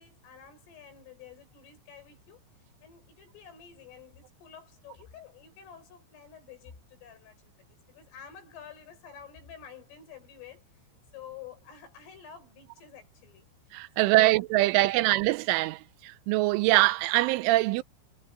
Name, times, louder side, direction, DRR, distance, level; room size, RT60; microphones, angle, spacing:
voice 1, 0.0-2.4 2.8-7.5 7.9-13.5 14.0-15.1, left 8 dB, 75° left, 9.3 m, -50 dB
voice 2, 13.7-17.8, right 18 dB, 80° right, 3.1 m, -23 dB
omnidirectional pair, 5.8 m